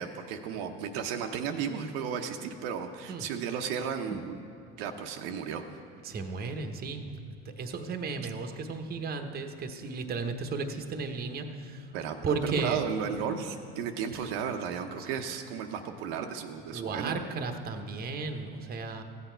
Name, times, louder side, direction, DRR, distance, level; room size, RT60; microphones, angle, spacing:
voice 1, 0.0-4.4 4.7-5.6 11.9-12.2 12.5-17.2, right 7 dB, 75° right, 4 dB, 0.8 m, -34 dB
voice 2, 6.0-11.9 12.2-12.8 14.1-14.2 16.7-19.0, right 4 dB, 30° right, 6 dB, 1.0 m, -34 dB
15.0 x 8.2 x 4.5 m, 2.4 s
supercardioid pair, 100°, 29 cm